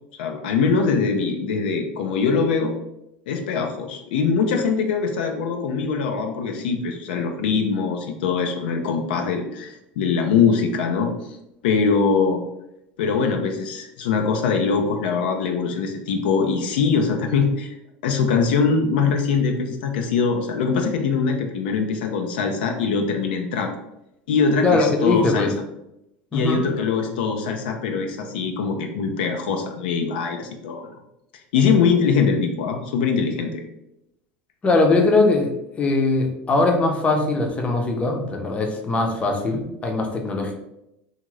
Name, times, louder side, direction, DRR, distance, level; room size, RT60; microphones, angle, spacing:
voice 1, 0.2-2.7 3.3-11.4 11.6-12.4 13.0-17.7 18.0-23.7 24.3-25.5 26.3-30.9 31.5-33.6, left 5 dB, 85° left, 3 dB, 0.4 m, -22 dB
voice 2, 24.6-25.5 26.3-26.6 34.6-35.5 35.8-40.5, left 3 dB, 25° left, 3 dB, 0.6 m, -20 dB
2.5 x 2.4 x 3.1 m, 0.85 s
supercardioid pair, 100°, 5 cm